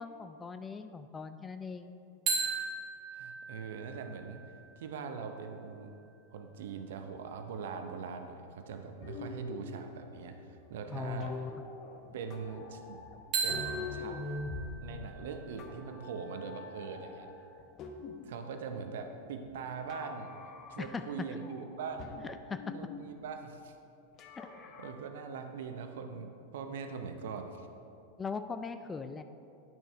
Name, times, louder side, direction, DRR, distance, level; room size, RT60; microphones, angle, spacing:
voice 1, 0.0-1.9 10.9-11.5 20.8-21.0 21.3-21.4 22.2-22.7 24.4-24.5 28.2-29.2, left 5 dB, 15° left, 9 dB, 0.3 m, -39 dB
sound 1, 2.3-6.1 13.3-17.2, right 4 dB, 35° right, 1.7 m, -39 dB
voice 2, 3.1-4.4 4.8-5.9 6.3-11.3 12.1-13.0 13.4-14.2 14.8-17.3 18.2-22.2 22.7-23.8 24.8-27.7, right 5 dB, 55° right, 6 dB, 0.6 m, -42 dB
sound 2, 9.0-18.4 18.7-19.5 19.9-21.1 21.4-23.0 24.2-24.9, left 4 dB, 35° left, 0.7 m, -45 dB
10.0 x 6.3 x 3.3 m, 2.6 s
figure-of-eight pair, 90°, 0 cm